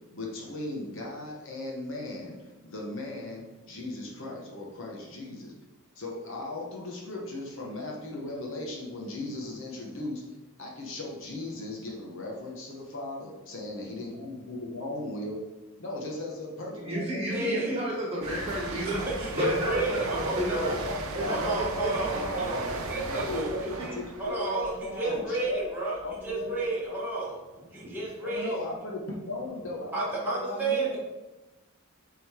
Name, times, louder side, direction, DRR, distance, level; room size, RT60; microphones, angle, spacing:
voice 1, 0.1-2.4 2.6-5.5 6.0-10.2 10.6-15.4 15.8-17.4 19.3-22.7 23.1-25.7 26.0-26.6 28.2-31.0, left 2 dB, 55° left, -2 dB, 1.1 m, -37 dB
voice 2, 16.7-20.0 20.4-20.7 21.2-22.7 22.9-23.2 23.6-24.0 27.7-28.0, equal, 25° right, -4 dB, 1.8 m, -32 dB
voice 3, 17.3-17.7 19.2-20.8 21.3-23.5 24.2-26.0 26.2-27.4 27.7-28.6 29.9-31.0, right 3 dB, 10° right, -8 dB, 1.6 m, -31 dB
sound 1, 18.2-25.7 26.0-26.3, right 3 dB, 70° right, 0.8 m, -37 dB
7.5 x 3.8 x 3.6 m, 1.1 s
head